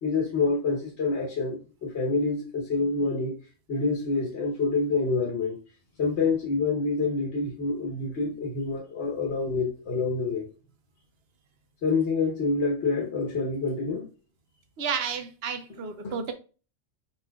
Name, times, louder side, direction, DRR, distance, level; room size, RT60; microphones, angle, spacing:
voice 1, 0.0-3.3 3.7-5.6 6.0-10.5 11.8-14.0 15.7-15.8 16.0-16.2, left 3 dB, 75° left, 1.4 m, -27 dB
voice 2, 14.8-16.3, right 6 dB, 65° right, 1.0 m, -31 dB
5.0 x 4.4 x 2.3 m
omnidirectional pair, 1.2 m